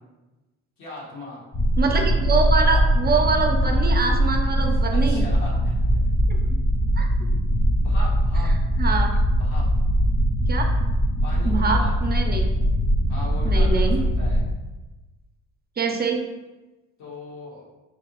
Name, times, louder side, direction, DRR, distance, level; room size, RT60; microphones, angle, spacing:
voice 1, 0.8-1.4 4.5-4.6 4.9-5.8 7.8-8.5 9.4-9.6 11.2-11.9 13.1-14.4 17.0-17.6, left 2 dB, 75° left, -5 dB, 1.5 m, -38 dB
sound 1, 1.5-14.5, equal, 25° left, 0.5 m, -21 dB
voice 2, 1.8-5.3 6.3-6.4 7.0-7.1 8.8-9.1 10.5-10.6 11.4-12.5 13.4-14.0 15.8-16.2, right 4 dB, 30° right, 3 dB, 0.5 m, -24 dB
4.6 x 2.9 x 2.9 m, 1.1 s
cardioid pair, 90°, 30 cm